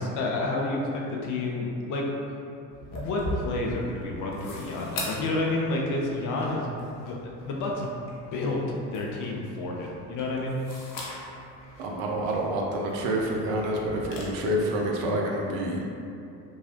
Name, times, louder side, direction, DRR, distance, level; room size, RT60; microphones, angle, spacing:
voice 1, 0.0-2.4 2.9-7.2 7.4-7.9 8.3-10.6, left 2 dB, 40° left, -2 dB, 0.5 m, -30 dB
sound 1, 2.7-14.2, equal, 85° left, 0.6 m, -41 dB
voice 2, 11.8-15.8, right 1 dB, 60° right, -1 dB, 0.6 m, -28 dB
2.9 x 2.3 x 2.9 m, 2.6 s
figure-of-eight pair, 55°, 49 cm